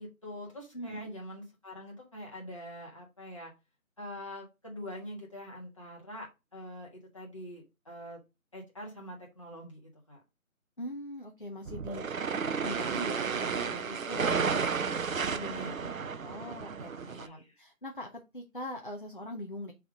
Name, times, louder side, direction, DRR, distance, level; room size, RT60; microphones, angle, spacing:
voice 1, 0.0-3.5 4.0-8.2 8.5-9.8 10.1-10.2 15.5-16.0 17.0-17.5, equal, 25° left, -2 dB, 1.4 m, -44 dB
voice 2, 10.8-12.1 12.3-14.6 15.3-15.9 16.2-19.7, left 1 dB, 40° left, 3 dB, 0.6 m, -42 dB
sound 1, 11.7-17.3, right 6 dB, 70° right, 0.7 m, -32 dB
5.7 x 3.6 x 4.7 m, 0.25 s
figure-of-eight pair, 175°, 42 cm